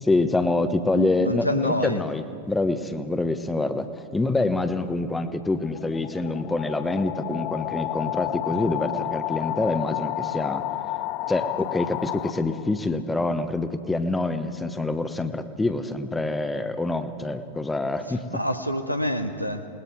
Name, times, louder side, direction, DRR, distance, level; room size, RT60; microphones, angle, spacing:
voice 1, 0.0-10.6 11.3-18.4, left 2 dB, 10° left, 9 dB, 1.1 m, -26 dB
voice 2, 0.9-2.0 18.1-19.7, equal, 90° left, 6 dB, 1.1 m, -27 dB
sound 1, 5.2-12.9, left 15 dB, 40° left, 0.5 m, -31 dB
28.5 x 20.0 x 4.6 m, 2.2 s
figure-of-eight pair, 90°, 0 cm